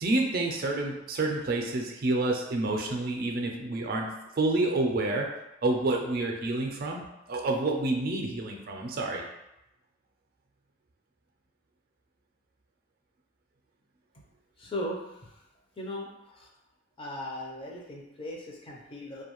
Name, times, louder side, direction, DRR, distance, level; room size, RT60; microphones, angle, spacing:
voice 1, 0.0-4.1 4.4-5.3 5.6-7.0 7.3-9.3, right 2 dB, 55° right, 1 dB, 0.4 m, -28 dB
voice 2, 14.6-15.3 15.8-16.5 17.0-19.2, left 1 dB, 30° left, -2 dB, 0.5 m, -38 dB
2.5 x 2.2 x 2.9 m, 0.89 s
head